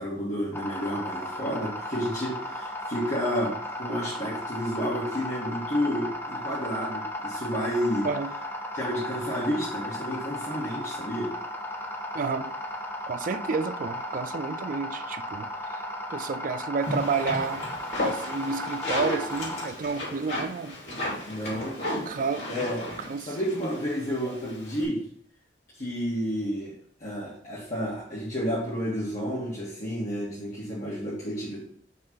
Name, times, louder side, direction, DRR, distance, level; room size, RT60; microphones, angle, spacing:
voice 1, 0.0-8.1 8.7-11.3 21.3-21.8 22.5-22.8 23.3-25.0 25.7-26.7 27.0-31.6, equal, 45° left, 1.6 m, -30 dB
sound 1, 0.5-19.7, left 1 dB, 15° left, 0.7 m, -35 dB
voice 2, 12.1-12.5 13.1-15.8 16.1-17.7 18.0-20.8 22.1-22.7 23.1-23.4, right 4 dB, 50° right, 0.4 m, -30 dB
sound 2, 16.8-24.8, left 1 dB, 75° left, 2.7 m, -34 dB
5.5 x 3.3 x 5.6 m
head